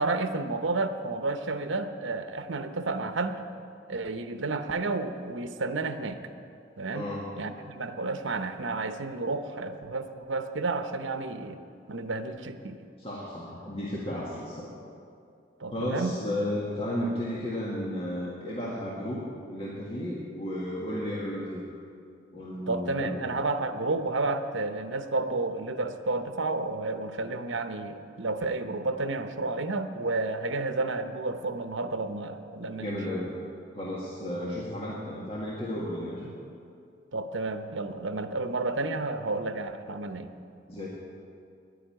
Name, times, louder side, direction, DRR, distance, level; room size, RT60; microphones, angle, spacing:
voice 1, 0.0-3.4 3.9-6.2 6.8-7.1 7.4-11.6 11.9-12.8 15.6-16.1 22.7-33.0 37.1-40.3, right 3 dB, 85° right, 9 dB, 0.9 m, -31 dB
voice 2, 6.9-7.3 13.0-14.7 15.7-19.2 19.5-21.6 22.3-23.2 32.8-33.4 33.7-36.3 40.7-40.9, left 1 dB, 30° left, -6 dB, 1.7 m, -33 dB
10.5 x 10.0 x 9.0 m, 2.4 s
head